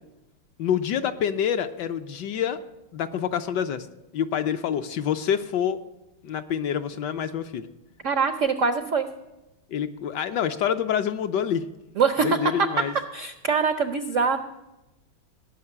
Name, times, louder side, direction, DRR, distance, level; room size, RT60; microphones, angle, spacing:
voice 1, 0.6-2.6 2.9-3.9 4.1-5.8 6.2-7.7 9.7-11.7 12.2-12.9, left 8 dB, 70° left, 9 dB, 1.1 m, -27 dB
voice 2, 8.0-9.1 12.0-12.4 13.1-14.4, right 5 dB, 80° right, 8 dB, 0.6 m, -23 dB
18.0 x 6.6 x 9.8 m, 1.0 s
omnidirectional pair, 2.2 m